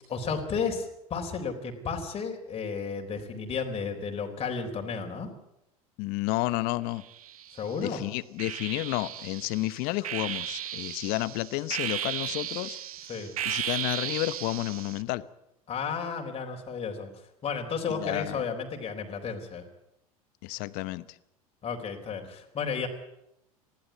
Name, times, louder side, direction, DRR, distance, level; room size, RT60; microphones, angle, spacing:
voice 1, 0.1-5.3 7.6-8.0 13.1-13.3 15.7-17.1 17.4-19.6 21.6-22.9, left 5 dB, 30° left, 4.0 m, -33 dB
voice 2, 6.0-7.0 7.8-12.8 13.1-15.2 17.9-18.5 20.4-21.2, left 19 dB, 55° left, 1.0 m, -31 dB
sound 1, 7.0-7.7 8.4-15.0, right 11 dB, 75° right, 1.0 m, -35 dB
20.5 x 15.5 x 9.5 m
hypercardioid pair, 80°, 19 cm